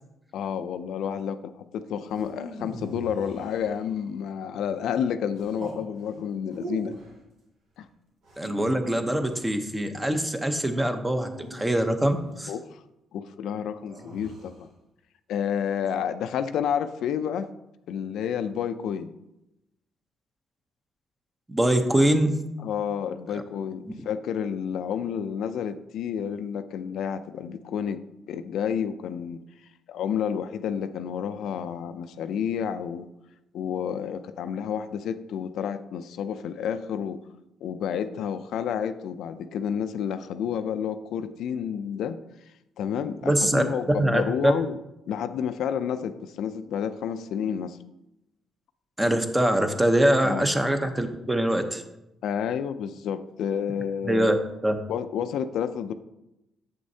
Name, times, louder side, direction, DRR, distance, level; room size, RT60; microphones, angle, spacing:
voice 1, 0.3-7.0 7.8-7.9 12.5-12.8 13.1-14.7 15.3-17.5 17.9-19.1 22.6-29.4 29.9-33.1 33.5-37.2 37.6-42.2 42.8-44.8 45.1-47.8 50.2-50.5 52.2-54.3 54.9-55.9, left 8 dB, 80° left, 10 dB, 0.4 m, -30 dB
sound 1, 2.1-4.1 5.3-5.8 6.5-7.2 8.2-9.6 11.1-12.3 13.9-14.6, right 2 dB, 75° right, 2.0 m, -42 dB
voice 2, 8.4-12.5 21.5-22.4 23.3-23.4 23.8-23.9 43.2-44.5 49.0-51.8 54.1-54.4 54.6-54.8, right 1 dB, 15° right, 6 dB, 0.8 m, -23 dB
7.8 x 6.2 x 2.7 m, 0.89 s
cardioid pair, 90°, 0 cm